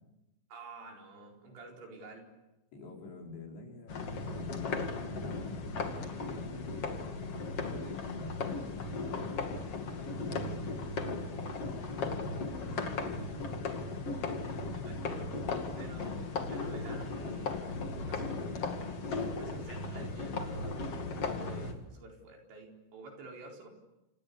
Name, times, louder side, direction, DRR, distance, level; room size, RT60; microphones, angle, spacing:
voice 1, 0.5-2.3 14.7-18.4 19.0-23.7, right 3 dB, 75° right, 1 dB, 6.7 m, -50 dB
voice 2, 2.7-9.3 10.2-10.9 11.6-13.8, left 2 dB, 75° left, 0 dB, 6.9 m, -48 dB
sound 1, 3.9-21.7, left 3 dB, 40° left, 2.6 m, -36 dB
29.0 x 28.0 x 6.9 m, 0.96 s
omnidirectional pair, 5.2 m